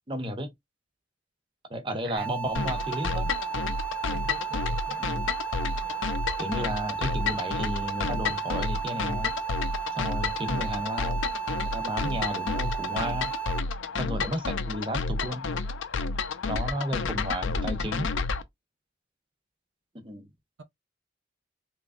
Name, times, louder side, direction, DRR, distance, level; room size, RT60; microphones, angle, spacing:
voice 1, 0.1-0.5 1.7-3.3 5.0-5.3 6.4-9.3 10.0-11.3 11.6-13.3 14.0-15.5 16.5-18.1 19.9-20.3, equal, 25° right, 0.8 m, -33 dB
sound 1, 2.2-13.6, right 9 dB, 5° left, 1.0 m, -34 dB
sound 2, 2.6-18.4, left 4 dB, 80° left, 0.6 m, -31 dB
voice 2, 4.0-5.0 16.6-16.9, right 4 dB, 65° right, 0.6 m, -45 dB
3.6 x 3.1 x 2.5 m
head